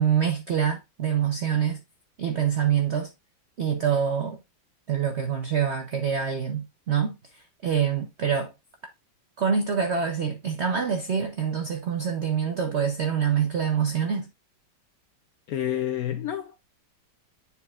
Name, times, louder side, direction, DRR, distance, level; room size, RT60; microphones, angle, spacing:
voice 1, 0.0-1.8 2.2-3.1 3.6-4.4 4.9-8.5 9.4-14.3, right 7 dB, 70° right, 0.6 m, -25 dB
voice 2, 15.5-16.6, left 11 dB, 75° left, 0.8 m, -29 dB
9.8 x 4.2 x 2.4 m
omnidirectional pair, 2.1 m